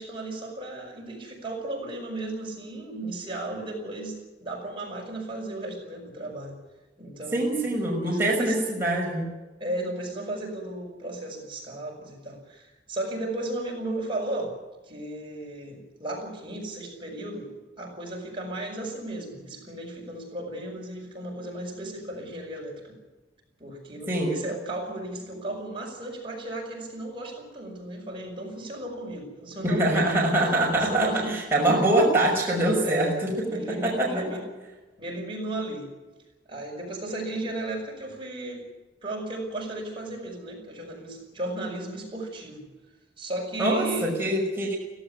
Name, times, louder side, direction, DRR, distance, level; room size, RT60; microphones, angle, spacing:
voice 1, 0.0-6.6 7.0-7.7 8.0-8.6 9.6-14.6 14.9-17.5 17.8-23.0 23.6-30.1 30.8-31.4 32.8-34.4 35.0-35.9 36.5-38.6 39.0-42.6 43.2-44.2, right 1 dB, 30° right, -1 dB, 6.2 m, -35 dB
voice 2, 7.3-9.3 24.1-24.3 29.6-33.1 33.8-34.1 43.6-44.8, right 1 dB, 15° right, -4 dB, 5.8 m, -23 dB
17.5 x 17.0 x 9.9 m, 1.1 s
head